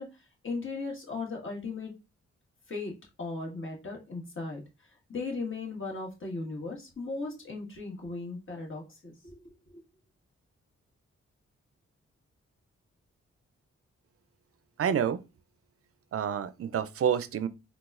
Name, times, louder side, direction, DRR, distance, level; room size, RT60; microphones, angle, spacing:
voice 1, 0.0-1.9 2.7-2.9 3.2-9.8, left 3 dB, 45° left, 1.5 m, -37 dB
voice 2, 14.8-15.2 16.1-17.5, right 8 dB, 50° right, 0.4 m, -28 dB
4.0 x 2.3 x 2.4 m
supercardioid pair, 45°, 30 cm